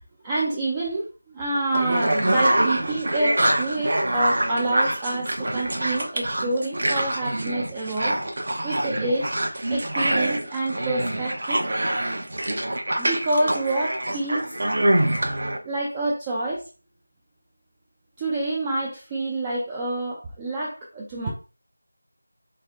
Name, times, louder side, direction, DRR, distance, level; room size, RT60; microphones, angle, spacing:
voice 1, 0.2-9.3 9.7-11.7 13.0-14.5 15.6-16.6 18.2-21.3, right 2 dB, 15° right, -3 dB, 0.5 m, -28 dB
sound 1, 1.7-15.6, right 1 dB, 50° right, 0.9 m, -25 dB
3.3 x 3.1 x 3.6 m, 0.32 s
figure-of-eight pair, 170°, 0 cm